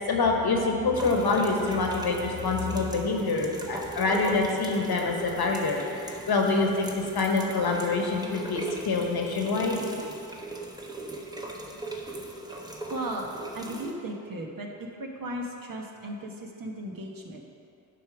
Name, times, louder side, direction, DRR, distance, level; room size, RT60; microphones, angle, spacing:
voice 1, 0.1-9.8, left 3 dB, 55° left, 1 dB, 1.3 m, -26 dB
sound 1, 0.9-13.9, right 1 dB, 10° right, 1.1 m, -38 dB
voice 2, 12.5-13.3 13.5-14.7 15.0-17.4, right 1 dB, 45° right, 0 dB, 1.3 m, -36 dB
9.3 x 3.6 x 6.0 m, 2.6 s
supercardioid pair, 45°, 45 cm